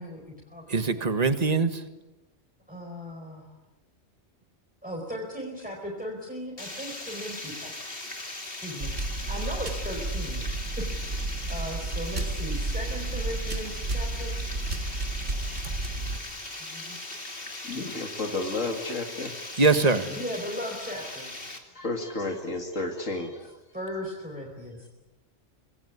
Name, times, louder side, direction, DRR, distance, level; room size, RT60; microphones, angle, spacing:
voice 1, 0.0-1.1 2.7-3.5 4.8-7.7 8.4-10.4 10.8-10.9 11.1-14.3 16.7-17.0 20.2-21.3 23.7-24.9, equal, 5° right, -2 dB, 4.8 m, -37 dB
voice 2, 0.7-1.8 15.6-15.8 19.6-20.1, right 3 dB, 30° right, 10 dB, 1.6 m, -23 dB
Water, 6.6-21.6, left 2 dB, 45° left, 3.3 m, -39 dB
sound 1, 8.8-16.2, right 2 dB, 70° right, 2.8 m, -32 dB
voice 3, 17.6-19.5 21.7-23.6, left 2 dB, 75° left, 3 dB, 2.8 m, -32 dB
26.0 x 21.0 x 9.6 m, 1.0 s
omnidirectional pair, 1.3 m